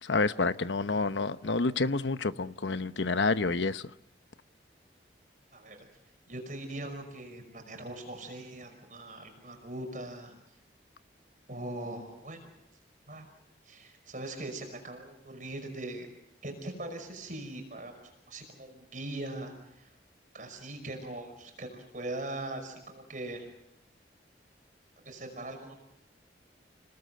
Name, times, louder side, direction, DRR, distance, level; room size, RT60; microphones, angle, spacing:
voice 1, 0.0-3.9, left 3 dB, 85° left, 0.9 m, -29 dB
voice 2, 5.5-5.9 6.3-10.4 11.5-12.5 13.1-13.3 13.6-16.1 16.4-19.9 20.3-23.5 25.0-25.7, right 1 dB, 45° right, 5.4 m, -41 dB
29.5 x 19.5 x 7.9 m
head